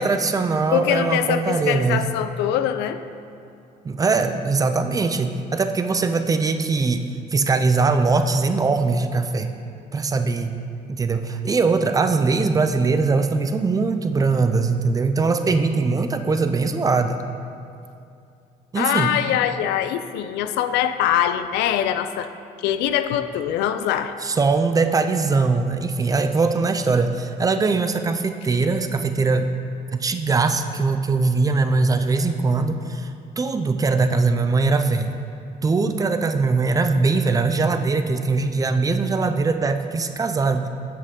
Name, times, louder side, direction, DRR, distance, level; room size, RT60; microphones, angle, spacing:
voice 1, 0.0-2.0 3.8-7.0 7.3-9.5 9.9-10.6 10.9-17.2 18.7-19.1 24.2-29.5 29.9-33.1 33.4-35.1 35.6-40.7, right 4 dB, 20° right, 8 dB, 0.4 m, -21 dB
voice 2, 0.7-3.0 18.7-22.3 22.6-24.1, left 10 dB, 90° left, 10 dB, 0.4 m, -23 dB
7.5 x 6.3 x 3.6 m, 2.5 s
cardioid pair, 110°, 17 cm